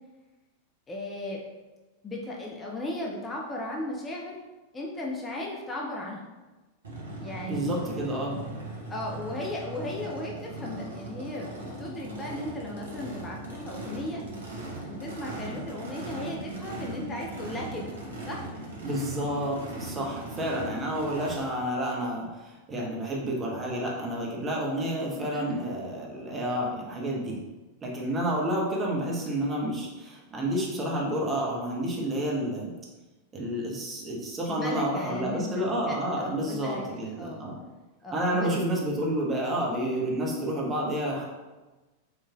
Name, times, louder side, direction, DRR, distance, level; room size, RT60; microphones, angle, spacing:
voice 1, 0.9-1.4 2.0-4.4 4.7-6.2 7.2-7.9 8.9-14.2 14.9-17.9 18.3-18.4 19.9-20.0 20.5-20.8 25.2-25.6 34.5-37.5 38.0-38.5, left 2 dB, 20° left, -2 dB, 0.5 m, -36 dB
Race car auto racing / Idling / Accelerating revving vroom, 6.8-21.4, right 2 dB, 70° right, 0.8 m, -39 dB
voice 2, 7.4-8.4 18.8-27.4 27.8-32.7 33.3-37.6 38.1-41.3, right 1 dB, 20° right, -3 dB, 0.9 m, -30 dB
4.5 x 3.1 x 2.3 m, 1.2 s
figure-of-eight pair, 90°, 0 cm